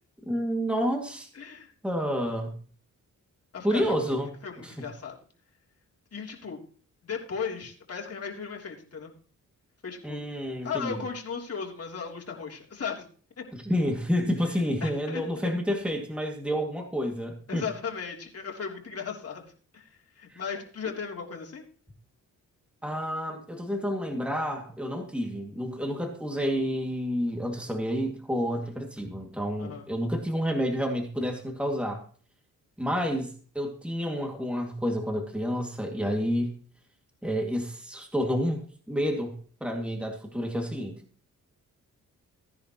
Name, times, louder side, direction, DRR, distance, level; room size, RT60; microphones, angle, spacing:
voice 1, 0.3-1.3 1.8-2.6 3.6-4.3 4.6-4.8 10.0-11.1 13.5-17.6 20.3-20.4 22.8-32.0 32.8-36.5 37.2-38.6 38.9-39.4 39.6-41.0, equal, 5° right, 2 dB, 2.3 m, -29 dB
voice 2, 1.3-1.7 3.5-3.8 4.4-5.1 6.1-6.6 7.0-9.1 9.8-10.2 10.6-13.0 14.8-15.5 17.5-19.4 19.7-19.9 20.2-21.6 29.6-29.8, left 6 dB, 45° left, -1 dB, 3.3 m, -36 dB
17.0 x 10.5 x 3.1 m, 0.42 s
cardioid pair, 90°, 33 cm